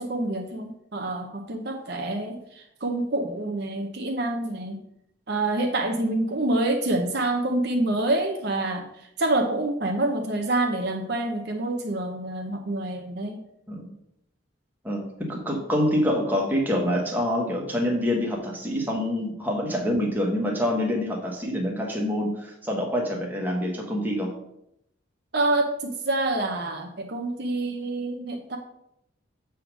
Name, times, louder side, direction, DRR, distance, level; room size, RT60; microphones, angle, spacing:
voice 1, 0.0-4.8 5.3-13.4 25.3-28.6, right 2 dB, 55° right, 3 dB, 0.7 m, -27 dB
voice 2, 14.8-24.3, equal, 10° right, -1 dB, 1.3 m, -26 dB
7.6 x 3.6 x 6.0 m, 0.78 s
head